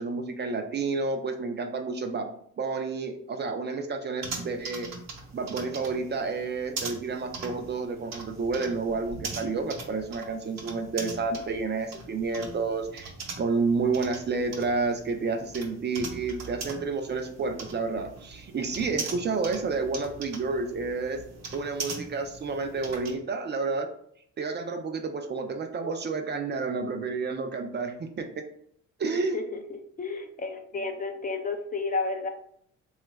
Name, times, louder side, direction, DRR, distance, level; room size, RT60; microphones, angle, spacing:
voice 1, 0.0-2.3 2.6-4.9 5.3-13.1 13.4-21.2 21.5-23.9 24.4-28.4 29.0-29.4, right 4 dB, 35° right, 5 dB, 0.4 m, -30 dB
sound 1, 4.2-23.2, right 4 dB, 60° right, 0.8 m, -41 dB
voice 2, 29.1-29.6 30.0-32.3, left 3 dB, 30° left, 5 dB, 0.4 m, -32 dB
3.1 x 2.3 x 3.0 m, 0.66 s
cardioid pair, 90°, 30 cm